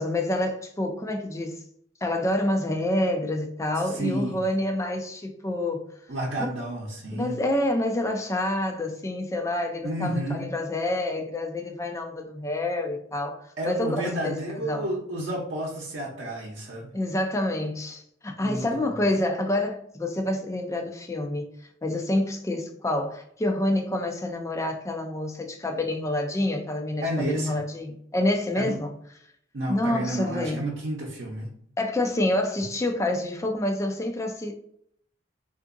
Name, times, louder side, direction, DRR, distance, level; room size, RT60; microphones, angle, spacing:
voice 1, 0.0-1.6 2.0-5.8 7.1-14.3 14.6-14.8 16.9-21.5 21.8-28.9 29.7-30.7 31.8-34.5, left 1 dB, 15° left, 0.4 m, -27 dB
voice 2, 3.8-4.4 6.1-7.4 9.8-10.5 13.6-16.9 18.4-18.9 27.0-27.6 28.6-28.8 29.5-31.5, right 1 dB, 70° right, 0.7 m, -31 dB
3.6 x 2.5 x 2.5 m
head